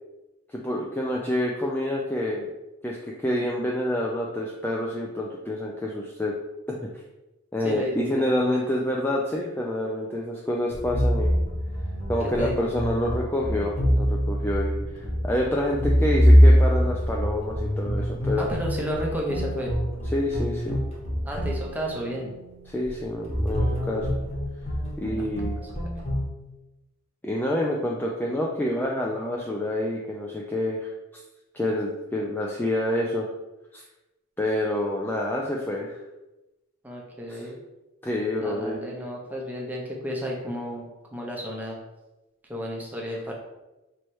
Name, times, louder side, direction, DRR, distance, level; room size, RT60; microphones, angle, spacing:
voice 1, 0.5-2.5 2.8-6.3 6.7-6.8 7.5-11.3 12.1-18.5 20.1-20.8 22.7-24.2 25.0-25.6 27.2-30.9 31.5-33.2 33.7-33.8 34.4-36.0 37.3-37.5 38.0-38.8, left 1 dB, 10° left, -2 dB, 0.3 m, -27 dB
voice 2, 7.6-8.3 12.4-12.5 18.4-19.7 21.2-22.3 25.9-26.0 36.8-37.6 38.4-40.8 41.1-41.8 42.5-43.3, equal, 10° right, -2 dB, 0.7 m, -32 dB
sound 1, 10.7-26.2, equal, 30° left, 1.1 m, -24 dB
3.1 x 2.9 x 4.5 m, 1.0 s
head